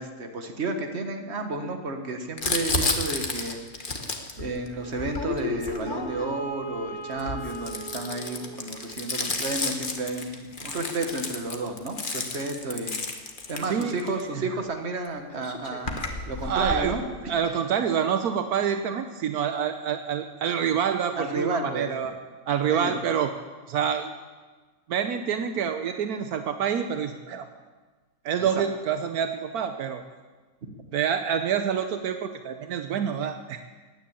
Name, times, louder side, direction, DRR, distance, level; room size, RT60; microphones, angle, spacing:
voice 1, 0.0-3.6 4.4-13.0 13.5-16.0 16.3-17.3 21.2-21.9 22.7-23.0 30.6-30.7, right 2 dB, 45° right, 5 dB, 1.8 m, -32 dB
Crumpling crinkling, 2.4-6.4 7.1-14.2 15.0-15.1 15.3-16.9, left 3 dB, 35° left, 1.5 m, -31 dB
Wind instrument woodwind instrument, 4.7-9.1, right 3 dB, 15° left, 4.6 m, -41 dB
voice 2, 13.6-14.0 14.3-14.4 16.4-17.0 17.3-22.1 22.5-23.3 23.7-24.1 24.9-27.5 28.2-30.0 30.9-33.6, right 8 dB, 75° right, 7 dB, 1.3 m, -27 dB
16.0 x 10.0 x 8.7 m, 1.3 s
omnidirectional pair, 1.6 m